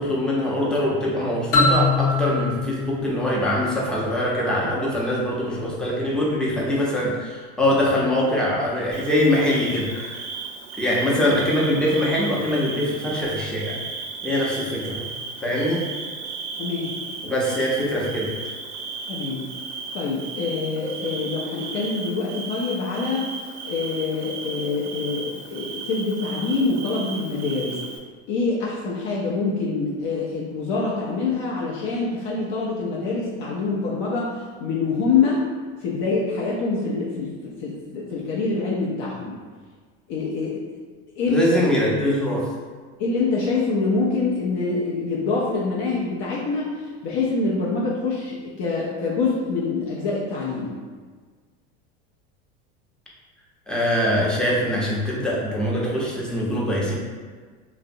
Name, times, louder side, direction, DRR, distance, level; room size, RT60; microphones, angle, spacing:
voice 1, 0.0-10.3 10.8-13.8 14.2-15.1 15.4-15.8 17.2-18.3 41.3-42.5 53.7-57.0, left 1 dB, ahead, -5 dB, 0.5 m, -23 dB
sound 1, 1.5-4.2, left 3 dB, 90° left, 0.8 m, -23 dB
Bird / Cricket, 8.9-28.0, right 4 dB, 50° right, 0.4 m, -35 dB
voice 2, 16.6-16.9 19.1-19.4 19.9-23.3 23.6-27.8 28.3-35.5 35.8-39.3 40.1-40.6 41.2-41.4 43.0-50.7, left 4 dB, 60° left, -5 dB, 0.5 m, -25 dB
2.5 x 2.0 x 2.5 m, 1.5 s
hypercardioid pair, 90°, 34 cm